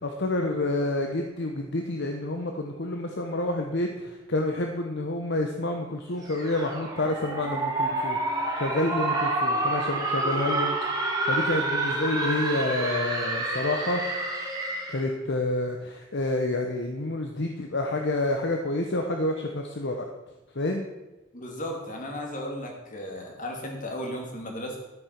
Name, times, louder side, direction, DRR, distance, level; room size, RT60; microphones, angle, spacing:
voice 1, 0.0-10.8 11.2-14.0 14.9-20.1 20.5-20.8, left 2 dB, 60° left, 3 dB, 1.0 m, -28 dB
sound 1, 6.2-15.1, right 2 dB, 20° right, 2.5 m, -28 dB
voice 2, 21.3-24.8, left 1 dB, 40° left, 1 dB, 2.7 m, -35 dB
12.5 x 8.6 x 6.0 m, 1.1 s
head